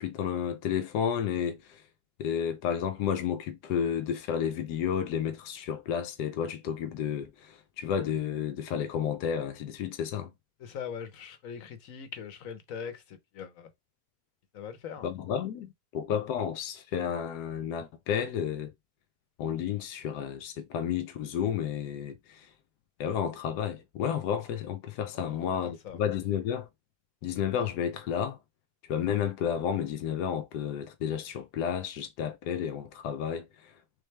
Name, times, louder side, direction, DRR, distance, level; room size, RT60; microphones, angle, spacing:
voice 1, 0.0-1.8 2.2-10.3 15.0-18.7 19.4-22.5 23.0-26.7 27.2-28.4 28.8-34.0, left 8 dB, 90° left, 1.2 m, -31 dB
voice 2, 10.6-13.7 14.5-15.1 25.1-26.0, left 7 dB, 60° left, 1.2 m, -41 dB
4.3 x 3.3 x 3.2 m
omnidirectional pair, 1.7 m